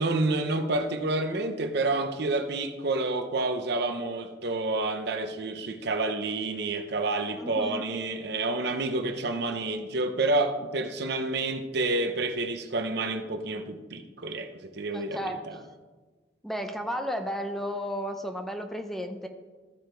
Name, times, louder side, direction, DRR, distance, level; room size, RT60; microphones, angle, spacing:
voice 1, 0.0-15.6, right 2 dB, 60° right, 7 dB, 0.8 m, -29 dB
voice 2, 7.4-7.9 14.9-15.4 16.4-19.3, equal, ahead, 5 dB, 0.6 m, -33 dB
14.5 x 5.0 x 4.5 m, 1.3 s
head